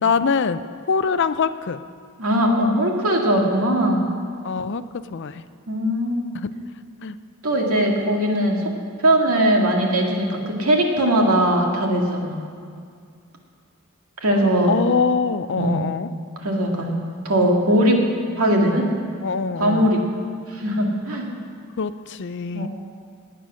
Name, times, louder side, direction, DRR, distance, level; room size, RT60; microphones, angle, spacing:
voice 1, 0.0-1.8 4.4-4.8 5.1-5.4 6.3-6.5 7.0-7.2 14.3-16.1 19.2-19.9 21.8-22.7, left 5 dB, 55° left, 13 dB, 0.5 m, -23 dB
voice 2, 2.2-4.1 5.7-6.3 7.4-8.6 9.0-12.4 14.2-14.8 15.6-15.8 16.4-17.0 17.2-18.0 18.4-18.9 19.6-20.0 20.5-21.3 22.5-22.7, right 1 dB, 75° right, 0 dB, 2.2 m, -20 dB
18.5 x 9.0 x 6.3 m, 2.2 s
head